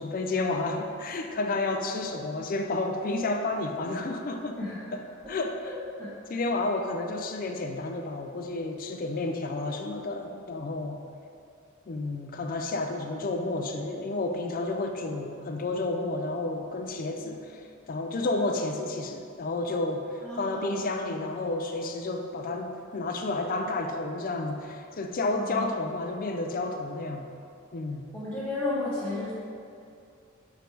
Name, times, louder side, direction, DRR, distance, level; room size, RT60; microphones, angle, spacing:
voice 1, 0.0-4.6 4.9-5.0 5.3-5.8 6.3-11.0 11.9-27.3 27.7-28.0, left 2 dB, 40° left, 4 dB, 0.4 m, -31 dB
voice 2, 4.6-4.9 5.6-6.4 20.2-20.8 25.3-25.7 28.1-29.3, left 2 dB, 10° left, -11 dB, 1.1 m, -33 dB
5.1 x 4.6 x 4.6 m, 2.5 s
head